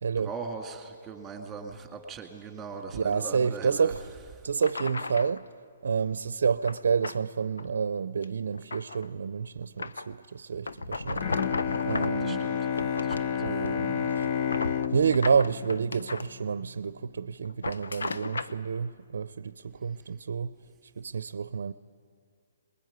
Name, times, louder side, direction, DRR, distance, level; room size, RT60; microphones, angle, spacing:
voice 1, 0.2-3.9 4.4-4.5 12.2-12.6 13.0-13.4, right 4 dB, 15° right, 2.2 m, -40 dB
voice 2, 2.9-4.0 4.4-5.5 5.8-11.2 11.8-12.5 13.4-14.3 14.6-20.6 21.0-21.7, right 6 dB, 75° right, 0.5 m, -29 dB
sound 1, 3.9-4.0 4.6-5.4 6.6-7.2 7.6-7.8 8.2-9.1 9.8-10.1 10.6-12.3 12.7-13.9 14.2-16.3 17.4-18.6, left 3 dB, 90° left, 0.8 m, -35 dB
Bowed string instrument, 11.2-16.8, left 8 dB, 40° left, 0.8 m, -31 dB
22.0 x 20.5 x 9.4 m
hypercardioid pair, 145°, 0 cm